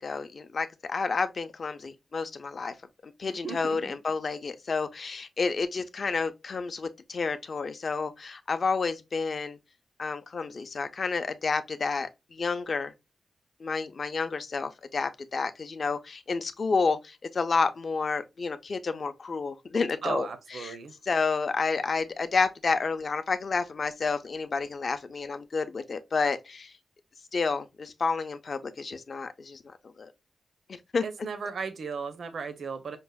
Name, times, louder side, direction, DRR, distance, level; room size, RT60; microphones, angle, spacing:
voice 1, 0.0-2.7 3.0-9.6 10.0-12.9 13.6-20.8 21.1-26.7 27.3-30.1 30.7-31.0, left 4 dB, 45° left, 0.4 m, -30 dB
voice 2, 3.4-4.0 20.0-21.0 31.0-33.0, right 5 dB, 65° right, 0.5 m, -36 dB
5.2 x 2.0 x 2.2 m
wide cardioid pair, 150°, 0 cm